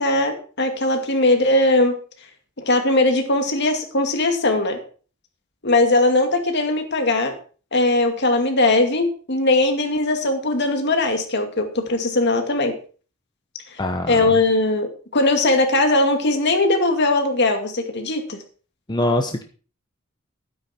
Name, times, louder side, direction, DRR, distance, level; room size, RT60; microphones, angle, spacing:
voice 1, 0.0-1.9 2.6-4.8 5.6-7.3 7.7-12.8 14.1-18.4, left 2 dB, 55° left, 5 dB, 2.3 m, -19 dB
voice 2, 13.8-14.2 18.9-19.4, left 1 dB, 20° left, 4 dB, 1.0 m, -22 dB
12.5 x 9.6 x 4.4 m, 0.39 s
head